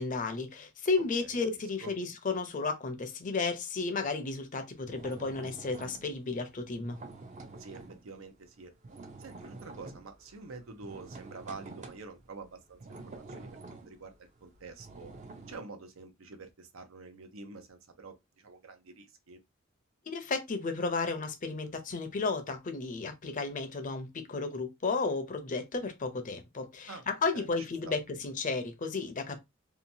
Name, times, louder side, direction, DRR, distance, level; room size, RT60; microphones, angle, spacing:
voice 1, 0.0-7.0 20.1-29.4, left 4 dB, 40° left, 0.5 m, -33 dB
sound 1, 4.8-8.1 8.4-15.6, right 3 dB, 35° right, 0.5 m, -48 dB
voice 2, 7.6-8.7 9.2-12.8 13.1-15.1 15.5-19.4 26.9-27.0 27.3-28.0, right 4 dB, 85° right, 0.7 m, -47 dB
2.8 x 2.2 x 2.7 m
head